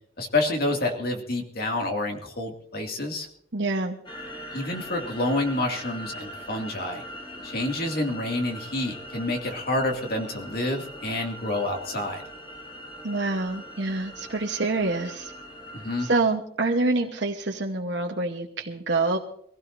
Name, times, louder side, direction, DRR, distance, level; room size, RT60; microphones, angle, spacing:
voice 1, 0.2-3.3 4.5-7.0 7.4-12.2 15.7-16.1, left 2 dB, 55° left, 2 dB, 2.4 m, -28 dB
voice 2, 3.5-4.0 13.0-15.3 16.0-19.2, right 3 dB, 75° right, 1 dB, 1.2 m, -26 dB
sound 1, 4.0-16.2, equal, 25° left, 4.9 m, -41 dB
23.5 x 16.5 x 2.7 m, 0.66 s
head